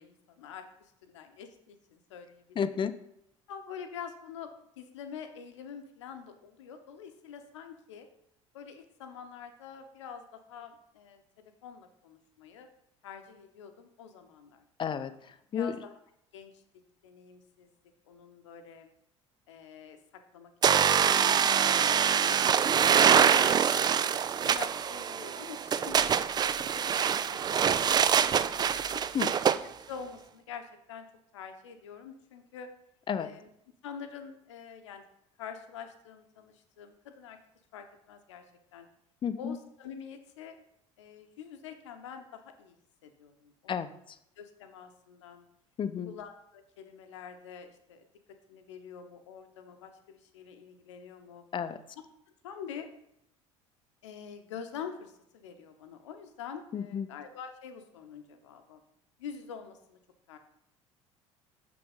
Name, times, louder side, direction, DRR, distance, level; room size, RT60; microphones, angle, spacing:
voice 1, 0.0-2.8 3.5-8.1 8.5-12.7 13.0-14.6 15.5-16.0 16.3-16.5 17.0-17.7 18.1-18.9 19.5-20.5 20.8-21.9 22.3-22.8 23.1-23.6 24.0-28.1 28.6-29.0 29.5-29.6 29.9-31.1 31.3-32.7 33.2-33.5 33.8-35.0 35.4-37.4 37.7-38.4 38.7-38.9 39.4-40.6 41.0-42.8 43.0-43.9 44.4-45.5 46.0-48.0 48.5-51.4 52.4-52.9 54.0-58.8 59.2-60.0 60.3-60.4, left 7 dB, 70° left, 7 dB, 0.9 m, -46 dB
voice 2, 2.6-2.9 14.8-15.1 15.5-15.8 29.1-29.3 33.1-33.3 39.2-39.5 43.7-43.9 45.8-46.1 51.5-51.8 56.7-57.1, left 7 dB, 30° left, 12 dB, 0.7 m, -31 dB
sound 1, 20.6-29.6, right 8 dB, 25° right, 0.4 m, -25 dB
7.0 x 6.1 x 5.4 m, 0.76 s
figure-of-eight pair, 60°, 16 cm